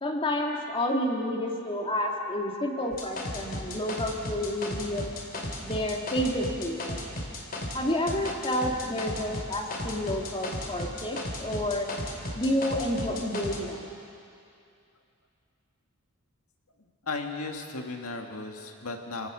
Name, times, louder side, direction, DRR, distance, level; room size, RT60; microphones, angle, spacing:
voice 1, 0.0-5.1 5.6-7.0 7.7-11.9 12.3-13.8, left 1 dB, 25° left, 1 dB, 2.2 m, -30 dB
sound 1, 2.9-7.8 8.1-13.6, left 1 dB, 45° left, 2.8 m, -35 dB
voice 2, 16.8-19.3, left 3 dB, 75° left, 3 dB, 2.0 m, -36 dB
26.5 x 17.5 x 6.3 m, 2.5 s
head